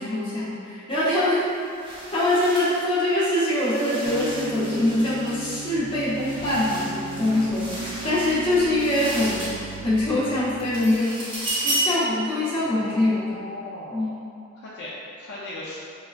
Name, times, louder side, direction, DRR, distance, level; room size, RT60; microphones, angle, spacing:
voice 1, 0.0-1.4 2.1-9.4 9.8-11.2 11.6-13.4 13.9-14.2, left 1 dB, 25° left, -10 dB, 1.0 m, -23 dB
sound 1, 0.9-1.1 1.4-10.0 10.4-12.1, right 1 dB, 25° right, 0.6 m, -33 dB
sound 2, 4.0-10.9, right 3 dB, 70° right, 0.4 m, -36 dB
voice 2, 12.6-14.0 14.6-14.9 15.2-15.8, left 1 dB, 55° left, -8 dB, 0.4 m, -38 dB
4.9 x 2.2 x 2.4 m, 2.6 s
head